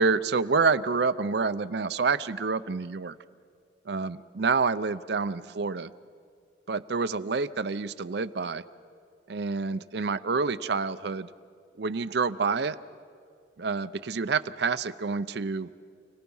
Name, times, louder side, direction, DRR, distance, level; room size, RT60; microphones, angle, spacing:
voice 1, 0.0-3.1 3.9-5.9 6.7-8.6 9.3-11.3 11.8-12.8 13.6-15.7, right 4 dB, 55° right, 12 dB, 0.5 m, -28 dB
29.5 x 17.5 x 5.5 m, 2.2 s
head